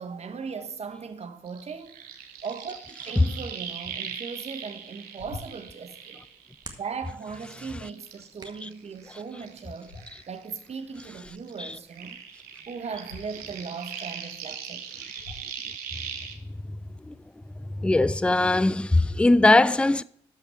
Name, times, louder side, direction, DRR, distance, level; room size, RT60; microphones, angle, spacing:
voice 1, 0.0-2.1 2.4-2.8 3.0-6.2 6.8-10.0 10.3-12.2 12.7-14.8, right 5 dB, 45° right, 1.4 m, -38 dB
sound 1, 1.5-7.0 7.3-10.7 10.9-16.3, right 8 dB, 70° right, 1.2 m, -40 dB
sound 2, 5.2-5.8 9.8-10.5 13.0-13.2 14.2-14.3 15.1-15.6, left 3 dB, 90° left, 2.4 m, -43 dB
Hands, 5.2-13.6, right 3 dB, 25° right, 1.8 m, -54 dB
voice 2, 17.7-20.0, left 2 dB, 5° left, 0.4 m, -20 dB
13.0 x 5.6 x 4.7 m
hypercardioid pair, 45°, 15 cm